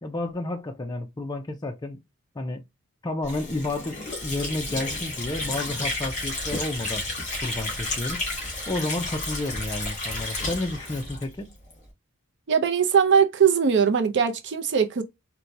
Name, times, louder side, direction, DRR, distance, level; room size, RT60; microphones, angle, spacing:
voice 1, 0.0-2.0 2.4-2.6 3.0-7.1 7.4-8.2 8.7-11.5, left 2 dB, 20° left, 0.4 m, -31 dB
Water / Sink (filling or washing), 3.2-11.8, left 2 dB, 35° left, 2.0 m, -32 dB
voice 2, 12.5-15.0, right 7 dB, 55° right, 0.5 m, -20 dB
4.2 x 2.2 x 2.5 m
head